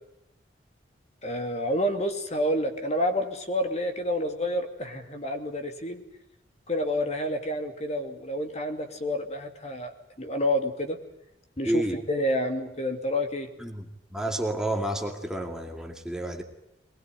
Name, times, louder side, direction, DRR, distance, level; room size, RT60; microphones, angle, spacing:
voice 1, 1.2-6.0 6.7-9.9 10.2-11.0 11.6-13.5, left 1 dB, 40° left, 6 dB, 2.8 m, -29 dB
voice 2, 11.7-12.0 13.6-13.9 14.1-16.4, right 1 dB, 5° right, 3 dB, 2.2 m, -30 dB
22.5 x 21.5 x 9.3 m, 0.85 s
head